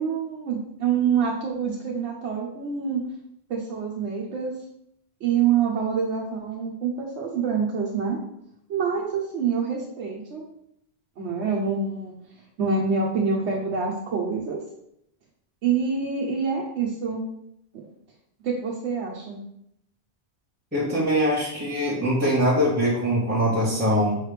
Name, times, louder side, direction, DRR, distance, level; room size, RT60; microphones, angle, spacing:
voice 1, 0.0-3.0 3.5-4.5 5.2-8.2 8.7-10.4 11.2-12.1 12.6-14.6 15.6-17.2 18.4-19.4, right 6 dB, 85° right, -3 dB, 1.0 m, -26 dB
voice 2, 20.7-24.2, equal, 10° right, -9 dB, 1.1 m, -22 dB
5.1 x 3.2 x 3.2 m, 0.77 s
omnidirectional pair, 1.1 m